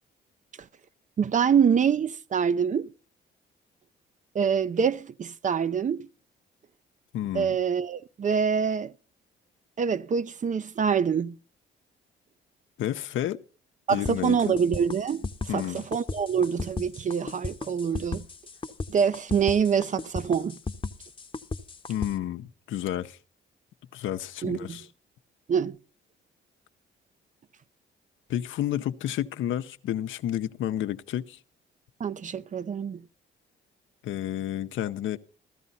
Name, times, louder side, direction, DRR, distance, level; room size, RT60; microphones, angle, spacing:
voice 1, 1.2-2.9 4.3-6.1 7.3-8.9 9.8-11.4 13.9-15.2 15.5-18.2 18.9-20.6 24.4-24.8 25.5-25.8 32.0-33.0, right 7 dB, 40° right, 0.6 m, -25 dB
voice 2, 7.1-7.6 12.8-13.4 13.9-14.5 15.5-15.8 21.9-23.2 23.9-24.9 28.3-31.4 34.0-35.2, left 12 dB, 75° left, 0.8 m, -31 dB
sound 1, 14.1-22.1, left 4 dB, 25° left, 0.9 m, -34 dB
15.0 x 12.5 x 4.0 m
cardioid pair, 90°, 20 cm